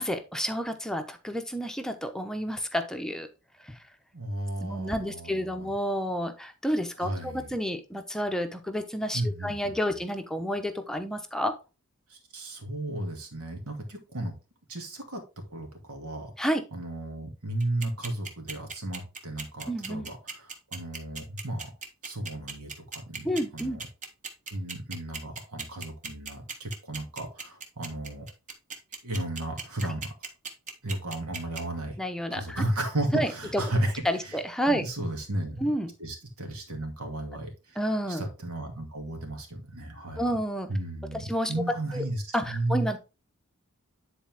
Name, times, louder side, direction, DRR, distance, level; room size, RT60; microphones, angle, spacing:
voice 1, 0.0-3.3 3.6-3.8 4.6-11.6 16.4-16.6 19.7-20.1 23.2-23.8 32.0-32.6 33.1-33.6 34.0-34.8 35.6-35.9 37.8-38.2 40.2-40.7 41.1-41.5 41.9-42.0 42.3-43.0, equal, 5° left, 6 dB, 0.8 m, -30 dB
voice 2, 4.1-5.7 7.0-7.5 9.1-9.7 12.1-14.3 14.7-15.2 15.5-16.3 16.7-21.7 22.0-23.3 23.5-23.9 24.5-28.3 29.0-30.1 30.8-32.0 32.3-34.4 34.7-35.7 36.0-37.8 38.1-40.3 40.7-42.9, right 1 dB, 80° right, 3 dB, 2.4 m, -34 dB
sound 1, 17.6-31.6, right 5 dB, 35° right, 1.2 m, -37 dB
10.0 x 4.2 x 3.5 m, 0.30 s
head